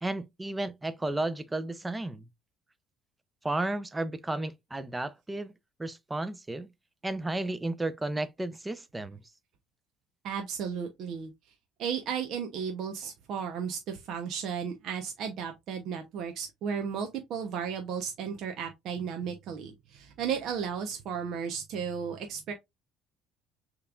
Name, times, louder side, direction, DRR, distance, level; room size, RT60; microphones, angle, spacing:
voice 1, 0.0-2.2 3.4-5.5 5.8-6.7 7.0-9.2, right 2 dB, 15° right, 0.8 m, -33 dB
voice 2, 10.2-11.3 11.8-22.5, right 7 dB, 65° right, 0.9 m, -34 dB
6.6 x 3.2 x 2.5 m
hypercardioid pair, 70°, 0 cm